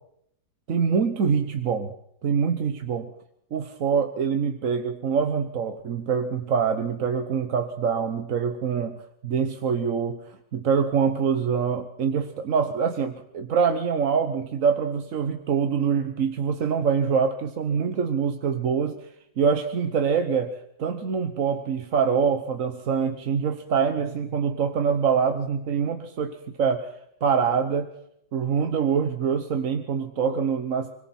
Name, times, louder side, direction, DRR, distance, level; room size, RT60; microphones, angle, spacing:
voice 1, 0.7-1.9 2.2-3.1 3.5-19.1 19.4-27.9 28.3-31.0, right 6 dB, 50° right, 7 dB, 1.3 m, -25 dB
25.0 x 23.5 x 4.5 m, 0.71 s
omnidirectional pair, 2.0 m